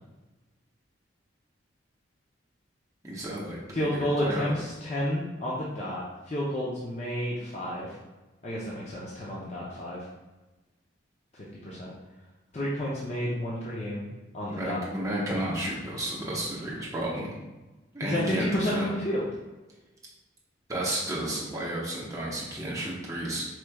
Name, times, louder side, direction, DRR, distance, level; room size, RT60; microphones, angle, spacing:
voice 1, 3.0-4.5 14.6-17.4 17.9-18.9 20.7-23.4, right 1 dB, 15° right, -5 dB, 0.8 m, -32 dB
voice 2, 3.7-8.0 8.4-10.1 11.3-11.9 12.5-14.1 14.3-14.8 18.0-19.3, equal, 35° left, -6 dB, 0.5 m, -31 dB
4.4 x 3.1 x 2.2 m, 1.1 s
head